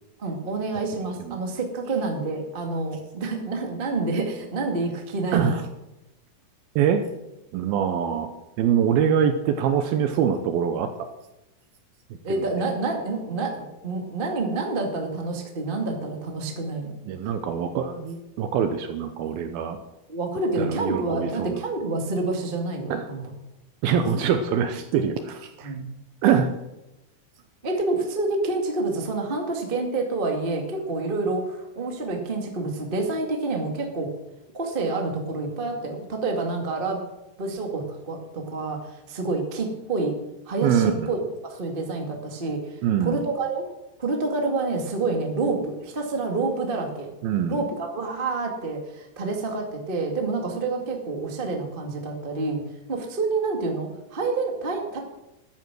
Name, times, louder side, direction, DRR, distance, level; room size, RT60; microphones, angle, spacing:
voice 1, 0.2-5.6 12.2-16.9 20.1-23.2 25.6-25.9 27.6-34.1 34.5-37.0 37.4-40.1 40.4-41.2 41.5-43.6 44.0-47.1 47.5-52.6 52.9-55.0, right 3 dB, 25° right, 2 dB, 1.0 m, -28 dB
voice 2, 6.8-7.1 7.5-8.3 8.6-10.9 12.1-12.4 17.1-19.8 20.6-21.6 22.9-23.1 23.8-25.7 26.2-26.5 40.6-41.1 42.8-43.2 47.2-47.6, right 8 dB, 80° right, 7 dB, 2.5 m, -24 dB
13.0 x 10.5 x 6.2 m, 0.94 s
omnidirectional pair, 4.6 m